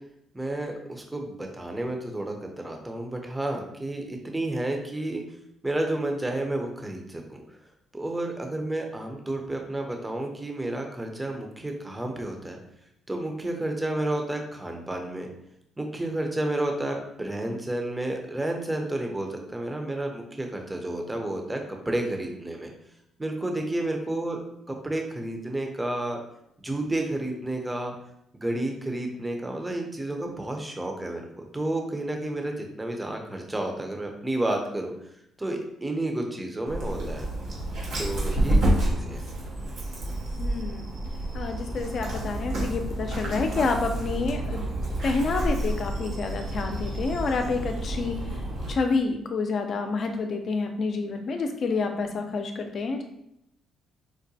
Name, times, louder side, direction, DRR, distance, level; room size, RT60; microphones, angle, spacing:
voice 1, 0.3-5.2 5.6-7.4 7.9-12.6 13.1-15.3 15.8-22.7 23.2-24.4 24.7-26.2 26.6-27.9 28.3-34.9 35.4-37.3 38.0-39.2, right 1 dB, 15° right, 3 dB, 0.6 m, -31 dB
Dog, 36.7-48.7, right 1 dB, 85° right, 1.4 m, -29 dB
voice 2, 40.4-40.9 41.3-44.6 45.0-48.2 48.7-53.0, left 4 dB, 55° left, 5 dB, 0.5 m, -28 dB
4.6 x 2.1 x 2.7 m, 0.78 s
cardioid pair, 90°, 0 cm